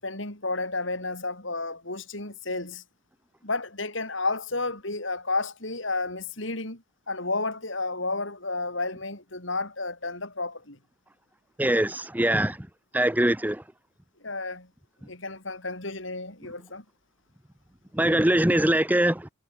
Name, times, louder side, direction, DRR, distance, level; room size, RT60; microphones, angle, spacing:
voice 1, 0.0-2.8 3.4-10.8 14.2-14.7 15.0-16.8, left 3 dB, 65° left, 6.2 m, -32 dB
voice 2, 11.6-12.6 12.9-13.6 17.9-19.3, right 1 dB, 10° right, 0.6 m, -22 dB
head